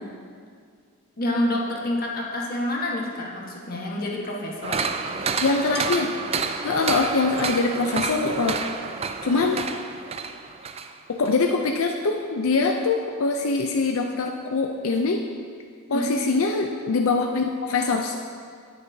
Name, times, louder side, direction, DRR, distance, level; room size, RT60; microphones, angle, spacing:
voice 1, 1.2-4.9 15.9-16.2, left 1 dB, 45° left, -2 dB, 1.4 m, -28 dB
sound 1, 4.6-10.9 11.3-11.4, right 5 dB, 30° right, 0.3 m, -29 dB
voice 2, 5.4-6.1 6.6-8.6 9.2-9.6 11.1-15.2 15.9-18.2, left 3 dB, 80° left, 2 dB, 0.5 m, -23 dB
18.0 x 6.7 x 2.8 m, 2.1 s
head